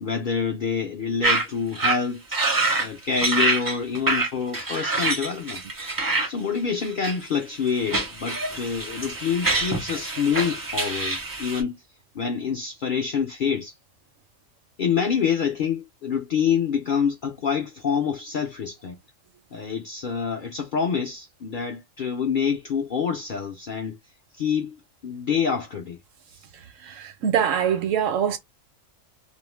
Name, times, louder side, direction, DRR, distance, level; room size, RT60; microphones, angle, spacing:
voice 1, 0.0-2.2 2.8-5.6 6.3-11.7 12.2-13.7 14.8-19.0 19.5-24.0 24.4-26.0, left 6 dB, 65° left, 0.5 m, -26 dB
sound 1, 1.2-1.5 1.7-2.0 2.3-2.9 3.2-6.3 6.8-7.3 7.7-11.6, right 2 dB, 25° right, 0.4 m, -25 dB
voice 2, 26.8-28.4, right 8 dB, 75° right, 1.0 m, -23 dB
2.5 x 2.0 x 3.0 m
omnidirectional pair, 1.3 m